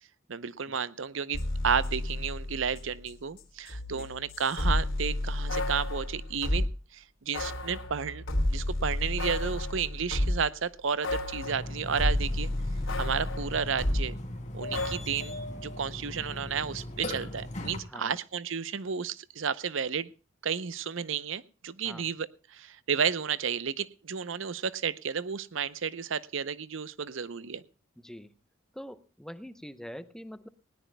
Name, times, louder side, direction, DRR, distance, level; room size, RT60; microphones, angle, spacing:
voice 1, 0.3-6.7 6.9-8.2 8.5-12.5 12.9-14.1 14.5-15.3 15.6-20.1 20.4-27.6, right 6 dB, 65° right, 17 dB, 0.7 m, -32 dB
sound 1, 1.3-3.1 3.4-6.7 7.3-10.5 11.0-14.1 14.7-15.0, left 1 dB, 75° left, 3.1 m, -31 dB
Burping eructation, 11.4-17.8, left 1 dB, 35° left, 2.7 m, -39 dB
voice 2, 28.0-28.3 28.7-30.5, equal, 5° left, 12 dB, 0.7 m, -44 dB
19.5 x 17.5 x 2.2 m, 0.35 s
head